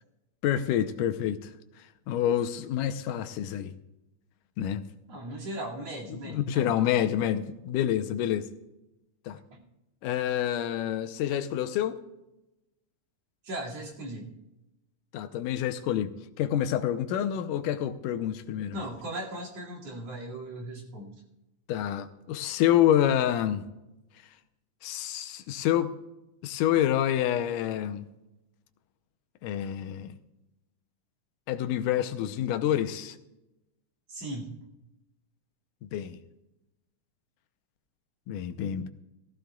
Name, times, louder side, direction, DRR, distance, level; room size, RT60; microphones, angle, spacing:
voice 1, 0.4-1.4 2.1-3.7 4.6-4.8 6.3-8.5 9.3-9.4 10.0-12.0 15.1-18.8 21.7-23.6 24.8-25.9 26.4-28.1 29.4-30.2 31.5-33.2 35.9-36.2 38.3-38.9, left 11 dB, 80° left, 2.4 m, -27 dB
voice 2, 5.1-7.2 9.5-9.6 13.4-14.3 18.7-21.1 34.1-34.5, right 1 dB, 50° right, 3.4 m, -38 dB
18.0 x 15.5 x 2.4 m
omnidirectional pair, 3.7 m